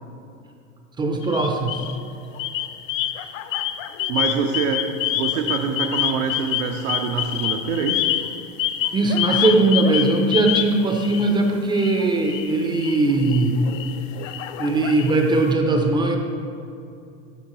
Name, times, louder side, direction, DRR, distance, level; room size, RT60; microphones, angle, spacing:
voice 1, 1.0-1.8 8.9-13.6 14.6-16.2, right 2 dB, 10° right, 3 dB, 0.4 m, -20 dB
sound 1, 1.2-2.0 2.4-11.4 11.7-15.4, left 12 dB, 75° left, 0.5 m, -27 dB
voice 2, 4.1-4.8 5.1-8.1, right 6 dB, 85° right, 3 dB, 0.7 m, -25 dB
12.0 x 4.5 x 3.0 m, 2.5 s
supercardioid pair, 120°, 38 cm